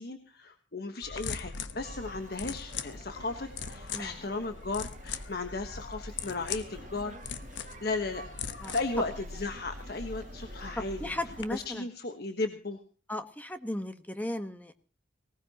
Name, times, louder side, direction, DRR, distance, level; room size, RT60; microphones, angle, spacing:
voice 1, 0.0-7.2 7.8-8.2 8.7-11.1 11.5-12.8, left 3 dB, 55° left, 6 dB, 1.3 m, -35 dB
sound 1, 1.0-11.4, left 5 dB, 85° left, 1.2 m, -41 dB
sound 2, 1.8-11.8, right 2 dB, 45° right, 2.0 m, -52 dB
voice 2, 3.9-4.3 8.6-8.8 10.8-11.9 13.1-14.7, left 1 dB, 10° left, 8 dB, 1.3 m, -36 dB
19.0 x 19.0 x 3.0 m, 0.38 s
head